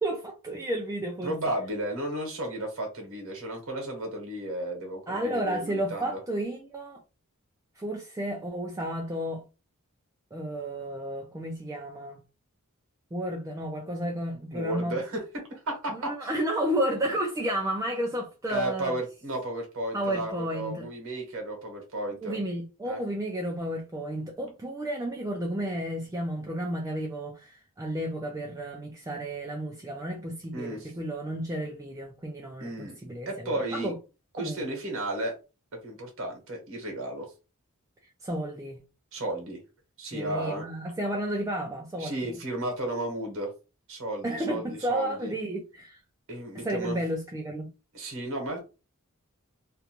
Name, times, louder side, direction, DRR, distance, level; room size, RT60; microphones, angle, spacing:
voice 1, 0.0-1.3 5.1-7.0 7.8-9.4 10.3-12.2 13.1-15.0 16.0-19.0 19.9-20.9 22.2-32.7 33.0-34.0 34.4-34.6 38.2-38.8 40.1-42.4 44.2-46.0 46.5-47.7, right 1 dB, 15° right, 0.4 m, -32 dB
voice 2, 1.2-6.2 14.5-16.3 18.5-22.4 22.8-23.0 30.5-30.9 32.6-33.0 33.2-33.9 34.3-35.3 35.8-37.3 39.1-39.6 40.0-40.6 42.0-43.5 43.9-45.3 46.3-47.0 47.9-48.6, right 1 dB, 65° right, 1.0 m, -33 dB
2.5 x 2.2 x 2.8 m
head